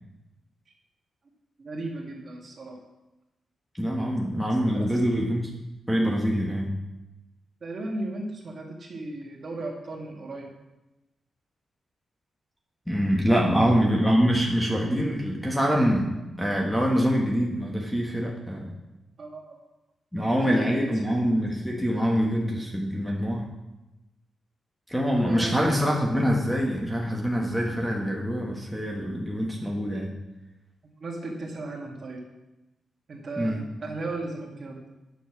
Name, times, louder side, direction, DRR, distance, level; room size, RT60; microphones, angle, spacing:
voice 1, 1.6-2.8 4.7-5.0 7.6-10.5 13.5-13.7 19.2-19.6 20.2-21.3 25.2-25.6 30.8-32.3 33.1-34.8, right 2 dB, 45° right, -1 dB, 1.9 m, -36 dB
voice 2, 3.8-5.5 5.9-6.7 12.9-18.7 20.1-23.4 24.9-30.1 33.4-33.6, equal, 5° left, -1 dB, 1.3 m, -25 dB
9.1 x 6.4 x 5.9 m, 1.0 s
wide cardioid pair, 145°, 0 cm